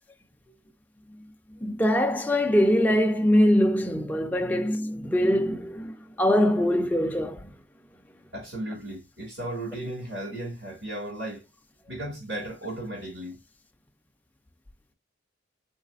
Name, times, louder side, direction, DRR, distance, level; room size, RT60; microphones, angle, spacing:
voice 1, 1.5-7.5, equal, 10° left, 0.4 m, -23 dB
voice 2, 8.3-11.4 11.9-13.4, right 1 dB, 70° right, 2.7 m, -35 dB
4.0 x 3.1 x 2.6 m
head